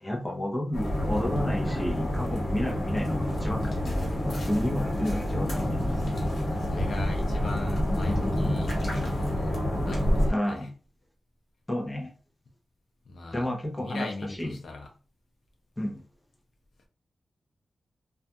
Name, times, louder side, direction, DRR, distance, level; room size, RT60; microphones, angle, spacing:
voice 1, 0.0-3.9 4.2-5.8 9.5-9.6 10.3-10.7 11.7-12.1 13.3-14.6 15.8-16.0, left 1 dB, 10° left, 0.6 m, -31 dB
sound 1, 0.7-10.3, left 1 dB, 60° left, 0.9 m, -28 dB
voice 2, 6.5-9.6 9.8-10.7 13.1-13.5 13.8-14.9, left 3 dB, 80° left, 0.5 m, -40 dB
2.3 x 2.2 x 2.7 m
wide cardioid pair, 155°, 0 cm